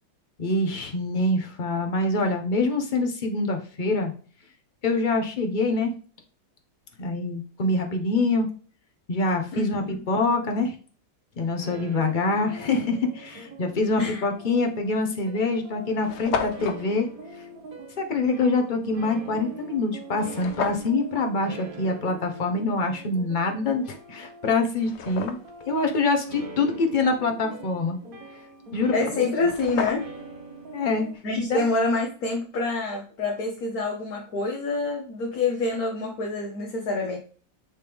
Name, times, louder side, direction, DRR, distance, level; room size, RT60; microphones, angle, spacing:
voice 1, 0.4-4.1 4.8-5.9 7.0-8.5 9.1-10.7 11.4-17.1 18.0-25.4 25.7-28.0 28.7-28.9 30.7-31.1 31.4-31.7, left 3 dB, 40° left, 4 dB, 0.7 m, -25 dB
voice 2, 9.5-10.0 14.0-14.2 28.9-30.1 31.2-37.2, left 3 dB, 60° left, 0 dB, 1.3 m, -27 dB
sound 1, 11.6-31.2, right 3 dB, 55° right, 1.4 m, -43 dB
sound 2, 14.5-14.7 15.4-15.5 15.6-15.7 15.9-16.8 20.3-20.9 23.8-23.9 24.5-25.6 29.0-29.1 29.3-30.3, left 6 dB, 80° left, 0.6 m, -32 dB
9.2 x 3.2 x 3.4 m, 0.41 s
omnidirectional pair, 1.9 m